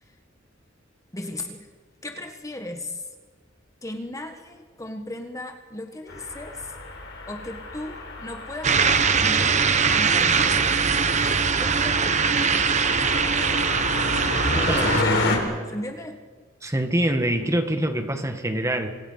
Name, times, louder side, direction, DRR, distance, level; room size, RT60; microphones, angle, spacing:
voice 1, 1.1-1.7 2.0-3.1 3.8-6.7 7.3-9.6 9.9-10.6 11.2-12.0 14.5-16.2, left 1 dB, 15° left, 5 dB, 1.5 m, -36 dB
sound 1, 6.1-15.4, left 2 dB, 65° left, 5.0 m, -30 dB
sound 2, 8.6-15.0, right 5 dB, 35° right, 1.0 m, -21 dB
voice 2, 14.5-14.9 16.6-18.9, right 1 dB, 15° right, 6 dB, 1.8 m, -25 dB
29.0 x 25.5 x 5.6 m, 1.5 s
head